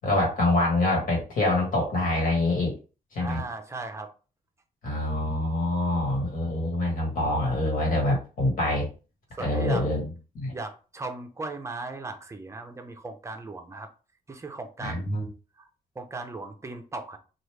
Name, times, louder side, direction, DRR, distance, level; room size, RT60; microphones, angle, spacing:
voice 1, 0.0-2.7 3.1-3.4 4.8-8.9 9.4-10.1 10.3-10.5 14.8-15.3, left 1 dB, 60° left, -2 dB, 1.5 m, -25 dB
voice 2, 3.2-4.1 9.4-9.9 10.5-13.9 14.3-15.0 15.6-15.7 16.0-17.2, right 3 dB, 20° right, 6 dB, 0.5 m, -37 dB
3.0 x 2.3 x 3.2 m, 0.35 s
wide cardioid pair, 145°, 16 cm